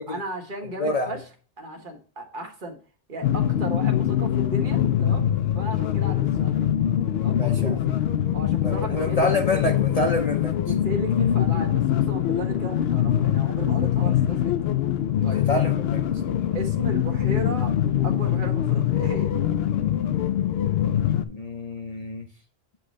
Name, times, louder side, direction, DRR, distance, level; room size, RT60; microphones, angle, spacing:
voice 1, 0.1-1.2 1.6-2.8 3.1-5.3 5.5-6.7 7.2-8.0 8.3-9.3 10.7-14.7 15.2-15.4 16.5-17.8 18.0-19.3, right 1 dB, 50° right, 2 dB, 1.5 m, -35 dB
voice 2, 0.8-1.1 7.3-7.8 8.6-10.5 15.3-16.0 21.3-22.3, left 2 dB, 40° left, 3 dB, 0.7 m, -27 dB
sound 1, 3.2-21.2, left 10 dB, 70° left, 0.8 m, -23 dB
8.0 x 3.1 x 6.3 m, 0.40 s
omnidirectional pair, 1.1 m